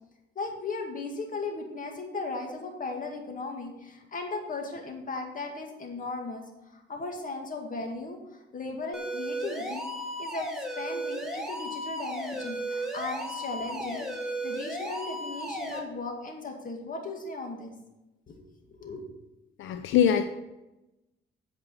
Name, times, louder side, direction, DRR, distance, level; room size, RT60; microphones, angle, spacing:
voice 1, 0.4-6.4 6.7-8.2 8.5-9.9 10.2-10.5 10.8-17.7 18.3-19.0, left 3 dB, 45° left, 2 dB, 2.1 m, -37 dB
sound 1, 8.9-15.8, right 1 dB, ahead, 2.0 m, -35 dB
voice 2, 19.6-20.2, left 9 dB, 80° left, 8 dB, 0.6 m, -23 dB
8.9 x 5.2 x 6.7 m, 0.98 s
cardioid pair, 90°, 20 cm